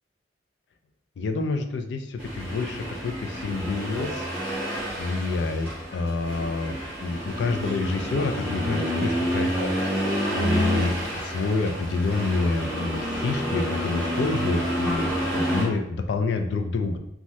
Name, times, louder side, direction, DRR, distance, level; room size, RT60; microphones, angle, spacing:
voice 1, 1.2-4.3 5.0-9.7 10.3-17.0, left 3 dB, 65° left, 6 dB, 0.3 m, -27 dB
Accelerating revving vroom, 2.2-15.7, equal, 5° left, 1.3 m, -29 dB
3.1 x 2.3 x 2.6 m, 0.78 s
head